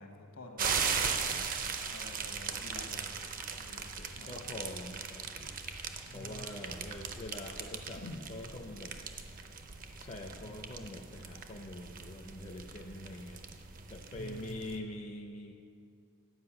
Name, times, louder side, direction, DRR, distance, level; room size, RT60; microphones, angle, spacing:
voice 1, 0.0-1.3 1.8-3.2 3.6-4.3 6.0-6.7 8.0-8.6 10.4-10.8 14.1-14.8, left 1 dB, 65° left, 3 dB, 1.2 m, -49 dB
sound 1, 0.6-14.8, right 6 dB, 40° right, 0.6 m, -39 dB
voice 2, 0.9-1.4 3.8-5.6 6.1-8.0 8.3-8.9 10.0-13.4 13.9-15.5, left 1 dB, 30° left, 1 dB, 0.5 m, -45 dB
9.7 x 5.2 x 7.3 m, 2.4 s
head